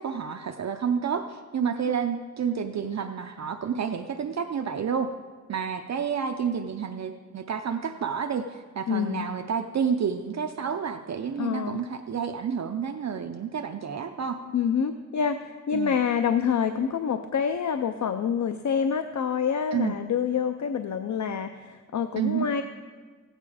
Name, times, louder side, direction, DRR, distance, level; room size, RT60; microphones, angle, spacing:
voice 1, 0.0-5.1 5.5-14.4 15.7-16.0 19.7-20.0 22.2-22.5, right 7 dB, 60° right, 6 dB, 0.6 m, -29 dB
voice 2, 8.9-9.3 11.4-11.8 14.5-22.6, left 7 dB, 65° left, 9 dB, 0.5 m, -27 dB
16.0 x 9.0 x 4.9 m, 1.5 s
wide cardioid pair, 120°, 31 cm